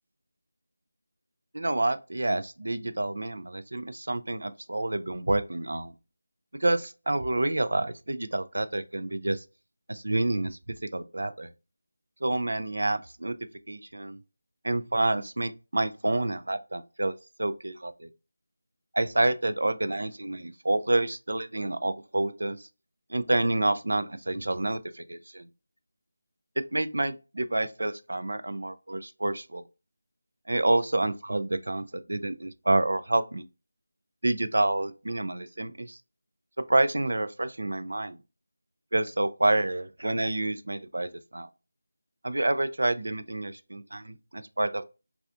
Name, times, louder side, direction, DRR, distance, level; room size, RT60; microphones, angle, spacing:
voice 1, 1.5-5.9 6.6-9.4 9.9-10.6 10.9-11.5 12.2-13.3 13.7-14.2 14.6-17.1 17.4-18.1 18.9-22.7 23.1-25.5 26.7-29.6 30.5-33.4 34.2-36.0 36.7-38.2 38.9-41.5 42.2-44.8, right 2 dB, 75° right, 0.3 m, -28 dB
2.4 x 2.3 x 2.5 m
figure-of-eight pair, 170°, 0 cm